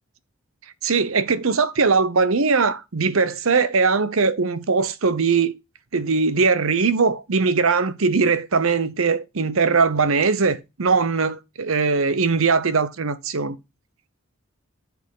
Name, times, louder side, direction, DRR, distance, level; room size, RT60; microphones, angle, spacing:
voice 1, 0.8-5.6 5.9-13.6, right 4 dB, 80° right, 0.9 m, -20 dB
10.5 x 6.0 x 3.8 m
head